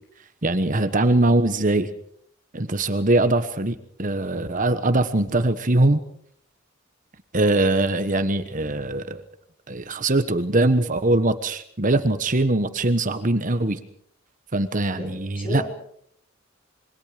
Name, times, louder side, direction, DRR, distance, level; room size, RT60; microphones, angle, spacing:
voice 1, 0.4-1.9 2.5-6.0 7.3-9.2 9.7-13.8 14.5-15.7, right 2 dB, 40° right, 10 dB, 1.2 m, -22 dB
voice 2, 15.0-15.7, equal, 25° left, 3 dB, 4.9 m, -33 dB
27.0 x 24.0 x 5.1 m, 0.66 s
head